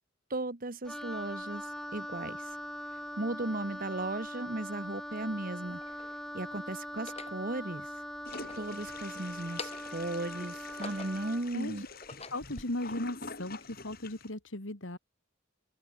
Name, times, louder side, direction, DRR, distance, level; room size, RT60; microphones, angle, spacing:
voice 1, 0.3-2.6 3.2-5.8 6.3-7.9 8.5-11.8, right 2 dB, 45° right, 1.3 m, -36 dB
Wind instrument woodwind instrument, 0.9-11.5, equal, ahead, 2.1 m, -42 dB
sound 1, 4.4-4.5 5.3-6.2 6.9-7.4 8.2-9.1 9.4-10.0 10.5-11.4 11.9-12.6, left 4 dB, 30° left, 4.7 m, -46 dB
Toilet flush, 8.2-14.3, left 3 dB, 50° left, 8.0 m, -47 dB
voice 2, 11.5-11.9 12.3-15.0, left 1 dB, 70° left, 2.9 m, -37 dB
open air
head